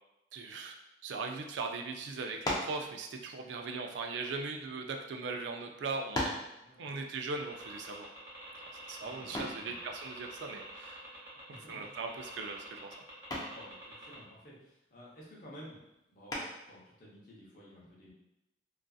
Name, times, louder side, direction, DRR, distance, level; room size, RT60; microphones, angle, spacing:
voice 1, 0.3-0.7 1.0-6.4 6.8-8.1 8.9-11.0 11.7-13.0, right 4 dB, 70° right, 3 dB, 0.3 m, -39 dB
sound 1, 2.4-2.8 3.8-4.9 5.6-5.7 6.1-6.5 9.3-9.7 11.6-12.0 12.3-12.7 13.3-13.6 16.3-16.7, left 1 dB, 20° left, 0.4 m, -36 dB
voice 2, 6.6-6.9 9.0-9.8 11.5-11.9 13.5-15.8 16.1-18.1, equal, 45° left, -6 dB, 0.7 m, -53 dB
sound 2, 7.4-14.1, right 1 dB, 15° right, 0.7 m, -48 dB
2.5 x 2.4 x 2.3 m, 0.89 s
head